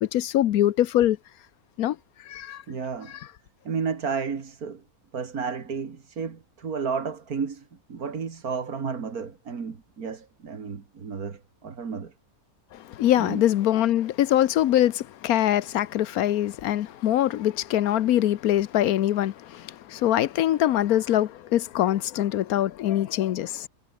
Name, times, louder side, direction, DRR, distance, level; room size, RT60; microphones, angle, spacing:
voice 1, 0.0-1.2 1.8-2.0 2.3-2.6 12.7-23.7, left 12 dB, 85° left, 1.2 m, -23 dB
voice 2, 2.7-3.2 3.6-4.8 5.1-12.1 13.1-13.4, right 5 dB, 85° right, 2.5 m, -32 dB
omnidirectional pair, 1.5 m